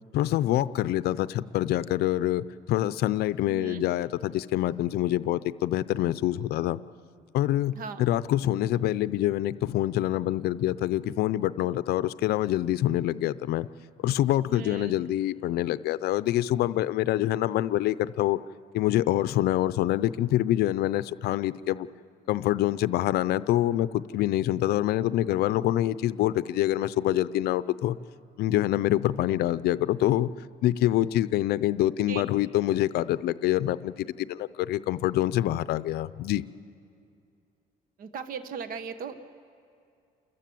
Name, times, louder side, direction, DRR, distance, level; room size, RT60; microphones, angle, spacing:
voice 1, 0.1-6.8 7.3-7.7 8.0-13.7 14.0-18.4 18.7-21.9 22.3-28.0 28.4-30.3 30.6-36.4, left 14 dB, 85° left, 16 dB, 0.5 m, -26 dB
voice 2, 3.5-3.8 7.7-8.1 14.5-15.0 32.1-32.2 38.0-39.2, right 6 dB, 60° right, 11 dB, 1.1 m, -37 dB
28.5 x 14.5 x 7.7 m, 2.5 s
cardioid pair, 120°, 16 cm